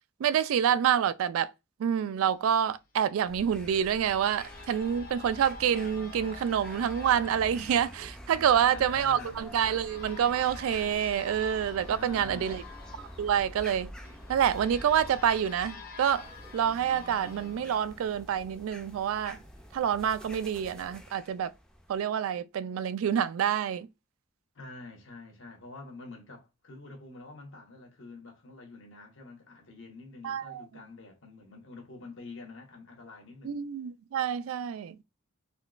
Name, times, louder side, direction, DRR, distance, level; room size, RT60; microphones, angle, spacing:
voice 1, 0.2-1.5 1.8-12.6 13.0-13.9 14.3-19.4 19.7-21.5 21.9-23.9 30.2-30.7 33.4-35.0, right 9 dB, 85° right, 0.3 m, -27 dB
sound 1, 3.0-18.7, left 4 dB, 45° left, 0.8 m, -49 dB
sound 2, 3.2-22.0, equal, 5° left, 0.4 m, -47 dB
voice 2, 8.3-9.6 11.9-12.8 24.5-33.6, left 3 dB, 65° left, 1.0 m, -47 dB
3.7 x 2.3 x 2.4 m
head